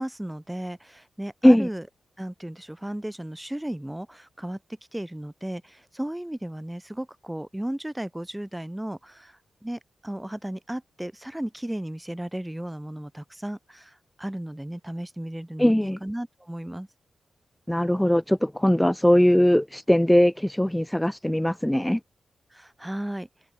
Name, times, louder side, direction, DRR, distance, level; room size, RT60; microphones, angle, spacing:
voice 1, 0.0-1.9 2.2-4.6 4.9-16.9 22.5-23.3, right 1 dB, 10° right, 6.3 m, -35 dB
voice 2, 15.6-16.0 17.7-22.0, equal, 5° left, 4.7 m, -20 dB
open air
supercardioid pair, 40°, 0 cm